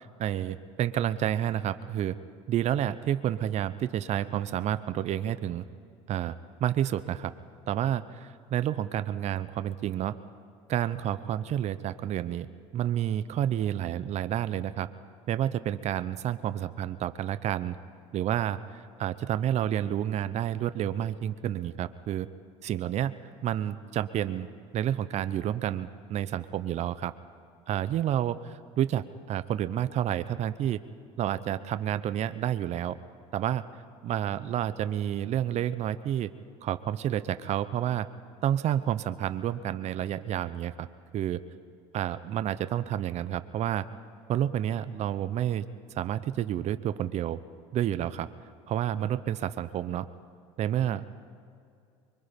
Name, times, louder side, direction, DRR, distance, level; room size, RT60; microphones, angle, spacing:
voice 1, 0.0-2.2 2.5-5.6 6.1-6.4 6.6-7.3 7.7-10.1 10.7-12.5 12.7-14.9 15.3-17.8 18.1-22.3 22.6-23.1 23.4-24.5 24.7-27.1 27.7-30.8 31.2-32.9 33.3-33.6 34.0-36.3 36.6-38.1 38.4-40.9 41.1-41.4 41.9-43.8 44.3-45.7 46.0-47.4 47.7-48.3 48.7-50.1 50.6-51.1, right 11 dB, 50° right, 13 dB, 0.8 m, -29 dB
24.0 x 22.5 x 5.3 m, 2.4 s
supercardioid pair, 85°, 15 cm